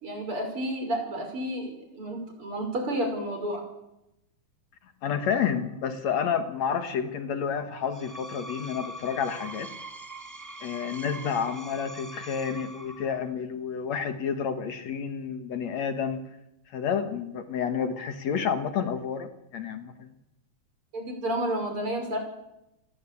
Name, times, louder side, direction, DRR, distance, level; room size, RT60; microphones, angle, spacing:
voice 1, 0.0-3.6 20.9-22.2, right 1 dB, 45° right, 4 dB, 6.6 m, -31 dB
voice 2, 5.0-9.7 10.6-16.2 16.7-20.1, left 7 dB, 65° left, 9 dB, 2.7 m, -30 dB
Screech, 7.8-13.3, right 1 dB, 10° right, 1.3 m, -42 dB
29.5 x 18.5 x 8.6 m, 0.89 s
omnidirectional pair, 3.4 m